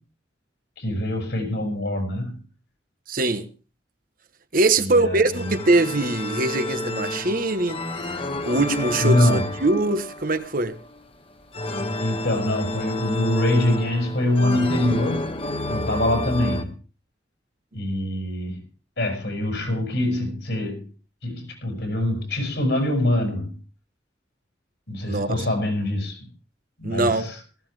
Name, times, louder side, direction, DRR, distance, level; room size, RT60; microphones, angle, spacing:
voice 1, 0.8-2.4 4.8-5.6 9.0-9.5 12.0-15.3 15.7-16.8 17.7-18.6 19.0-20.9 21.2-23.6 24.9-26.2 26.8-27.3, left 1 dB, 70° left, 6.7 m, -24 dB
voice 2, 3.1-3.5 4.5-7.8 8.2-10.8 25.0-25.4 26.8-27.3, right 2 dB, 50° right, 1.2 m, -22 dB
sound 1, 5.3-16.6, left 1 dB, 30° left, 1.5 m, -30 dB
18.0 x 15.5 x 3.4 m
head